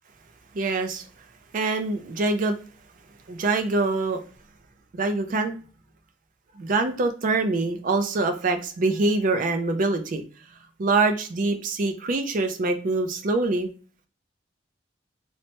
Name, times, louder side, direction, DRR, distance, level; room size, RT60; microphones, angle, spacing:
voice 1, 0.5-1.1 1.5-2.6 3.3-4.2 4.9-5.6 6.6-10.2 10.8-13.7, right 3 dB, 45° right, 7 dB, 0.4 m, -24 dB
3.2 x 2.0 x 2.8 m, 0.39 s
head